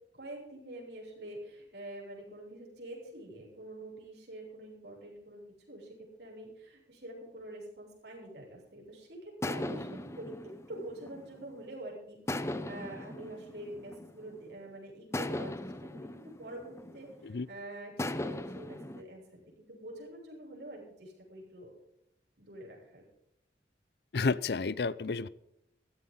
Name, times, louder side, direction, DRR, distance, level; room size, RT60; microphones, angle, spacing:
voice 1, 0.1-5.4 5.7-10.3 10.7-21.7 22.4-23.1, right 1 dB, 70° right, -2 dB, 7.1 m, -46 dB
sound 1, 9.4-11.7 12.3-14.4 15.1-17.4 18.0-19.0, left 1 dB, 15° left, 0.7 m, -38 dB
voice 2, 24.1-25.3, left 4 dB, 65° left, 19 dB, 0.6 m, -31 dB
16.0 x 15.0 x 3.9 m, 0.81 s
head